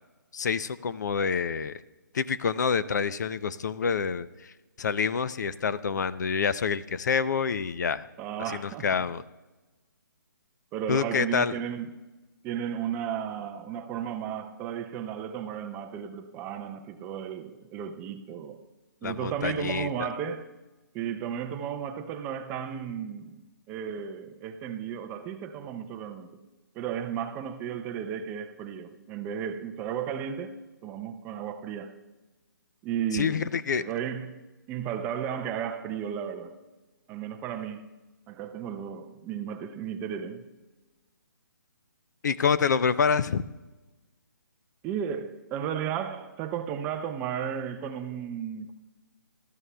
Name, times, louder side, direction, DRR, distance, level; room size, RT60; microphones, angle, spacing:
voice 1, 0.3-1.8 2.1-4.5 4.8-8.0 8.5-9.2 10.9-11.5 19.0-20.1 33.1-33.8 42.2-43.4, left 6 dB, 55° left, 0.5 m, -27 dB
voice 2, 8.2-9.1 10.7-11.9 12.4-18.6 19.0-20.4 20.9-23.4 23.7-26.5 26.8-32.0 32.8-34.4 34.7-36.6 37.1-37.8 38.3-40.5 44.8-48.7, right 8 dB, 15° right, 0.4 m, -34 dB
18.5 x 13.0 x 2.3 m
hypercardioid pair, 150°, 11 cm